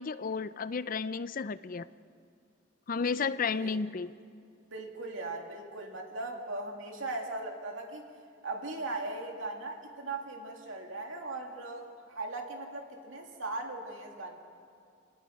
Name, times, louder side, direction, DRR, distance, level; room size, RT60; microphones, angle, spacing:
voice 1, 0.0-1.9 2.9-4.1, left 5 dB, 45° left, 15 dB, 0.5 m, -32 dB
voice 2, 3.1-3.7 4.7-8.0 8.4-14.4, right 2 dB, 80° right, 2 dB, 2.6 m, -39 dB
28.0 x 18.5 x 5.3 m, 2.4 s
head